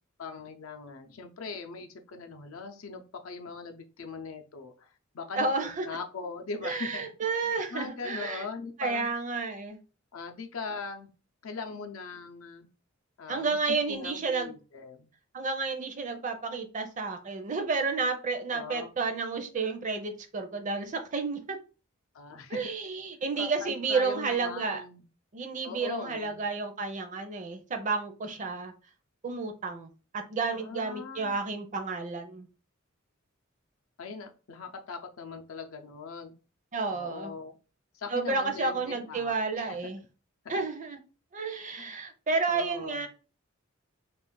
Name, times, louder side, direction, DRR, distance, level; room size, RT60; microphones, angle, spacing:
voice 1, 0.2-4.9 5.1-7.1 7.7-9.1 10.1-11.1 11.4-12.7 13.2-15.1 18.5-19.0 22.1-22.6 23.4-25.0 25.6-26.4 30.5-31.4 34.0-36.3 36.9-37.6 37.9-39.8 40.4-40.6 41.8-42.0 42.5-43.1, left 4 dB, 75° left, 5 dB, 0.6 m, -40 dB
voice 2, 5.4-5.9 6.6-8.5 8.8-9.8 13.3-14.5 15.3-21.6 22.5-24.8 25.3-28.7 29.2-32.5 36.7-37.3 38.1-40.0 40.5-41.0 41.3-43.1, right 4 dB, 35° right, 6 dB, 0.5 m, -31 dB
2.4 x 2.4 x 3.7 m, 0.34 s
head